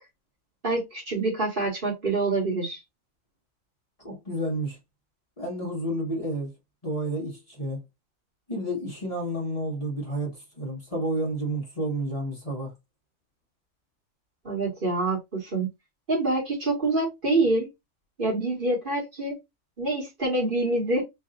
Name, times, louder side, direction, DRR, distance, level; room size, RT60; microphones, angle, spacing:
voice 1, 0.6-2.8 14.4-15.7 16.1-17.7 18.2-19.4 19.8-21.0, right 2 dB, 40° right, 1.5 m, -26 dB
voice 2, 4.0-4.8 5.4-6.5 6.8-7.8 8.5-12.7, right 1 dB, 25° left, 1.3 m, -30 dB
3.3 x 2.6 x 3.7 m
omnidirectional pair, 1.5 m